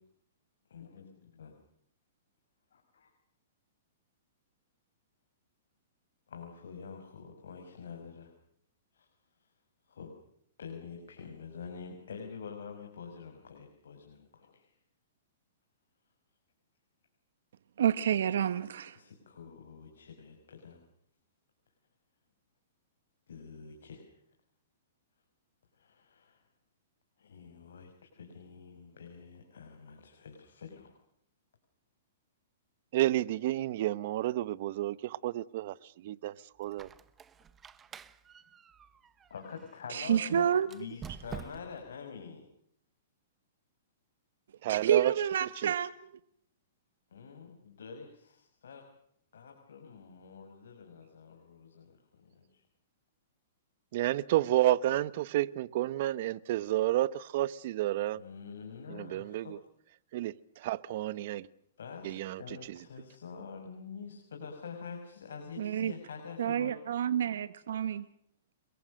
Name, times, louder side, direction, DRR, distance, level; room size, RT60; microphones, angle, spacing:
voice 1, 0.7-1.6 2.7-3.1 6.3-8.3 8.9-9.1 9.9-10.1 10.6-14.7 18.9-20.8 23.3-24.1 25.8-26.4 27.2-30.9 39.3-42.5 47.1-48.8 49.3-52.6 58.2-59.5 61.8-66.7, left 6 dB, 85° left, 4 dB, 5.7 m, -47 dB
voice 2, 17.8-19.0 39.9-40.7 44.7-45.9 65.6-65.9 66.4-68.0, right 9 dB, 75° right, 13 dB, 1.2 m, -29 dB
voice 3, 32.9-35.7 36.0-36.3 36.6-36.9 44.6-45.1 45.6-45.7 53.9-58.2 58.9-59.6 60.1-61.5 62.0-62.4 62.7-62.8, right 14 dB, 50° right, 19 dB, 1.0 m, -30 dB
Squeak, 36.6-39.8 40.6-41.9, right 7 dB, 15° right, 1.0 m, -48 dB
28.5 x 23.0 x 6.5 m, 0.70 s
hypercardioid pair, 155°, 0 cm